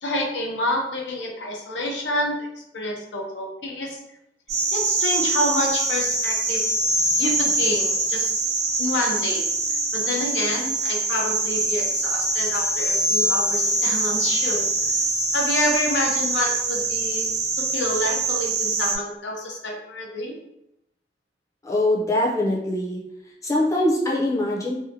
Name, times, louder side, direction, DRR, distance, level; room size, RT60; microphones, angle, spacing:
voice 1, 0.0-2.5 2.7-4.0 4.7-6.6 7.2-8.4 8.8-9.4 9.9-14.7 15.3-17.3 17.5-20.3, left 1 dB, 80° left, 0 dB, 0.6 m, -28 dB
sound 1, 4.5-19.0, right 2 dB, 60° right, 0.5 m, -24 dB
voice 2, 21.6-23.0 23.4-24.7, left 1 dB, 20° left, -5 dB, 0.6 m, -22 dB
2.7 x 2.1 x 2.7 m, 0.82 s
head